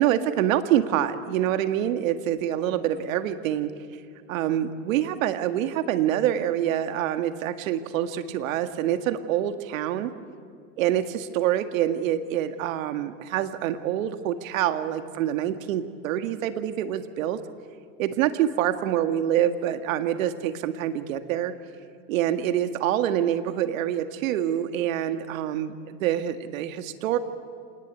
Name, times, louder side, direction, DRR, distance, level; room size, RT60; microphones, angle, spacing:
voice 1, 0.0-3.7 4.3-10.1 10.8-17.4 18.0-21.6 22.1-27.2, right 11 dB, 70° right, 9 dB, 1.9 m, -26 dB
27.5 x 19.5 x 9.1 m, 2.2 s
supercardioid pair, 130°, 41 cm